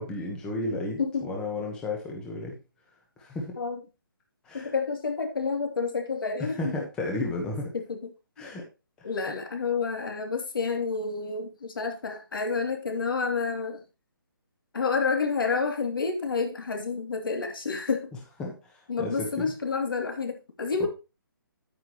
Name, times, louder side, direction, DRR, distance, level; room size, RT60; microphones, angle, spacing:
voice 1, 0.0-2.5 3.2-3.5 4.4-4.7 6.6-7.7 8.4-8.6 18.4-18.6 19.0-19.5, left 2 dB, 5° left, 1.1 m, -33 dB
voice 2, 4.5-6.8 7.4-7.5 7.7-8.1 9.0-13.8 14.7-18.1 18.9-20.9, left 4 dB, 70° left, 2.9 m, -29 dB
9.8 x 9.3 x 3.1 m
hypercardioid pair, 175°, 12 cm